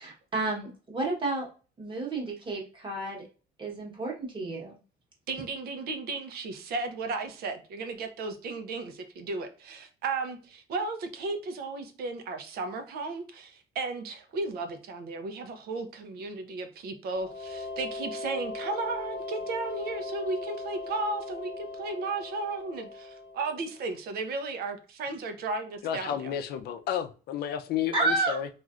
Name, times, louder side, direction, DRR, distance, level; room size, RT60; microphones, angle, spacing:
voice 1, 0.0-1.5 1.8-3.2 3.6-4.8 27.9-28.4, right 3 dB, 30° right, 1.2 m, -31 dB
voice 2, 5.3-26.3, right 3 dB, 65° right, 0.7 m, -35 dB
sound 1, 17.1-23.7, left 3 dB, 50° left, 1.2 m, -38 dB
voice 3, 25.8-28.5, left 9 dB, 70° left, 0.5 m, -31 dB
3.2 x 2.5 x 2.4 m
cardioid pair, 110°, 17 cm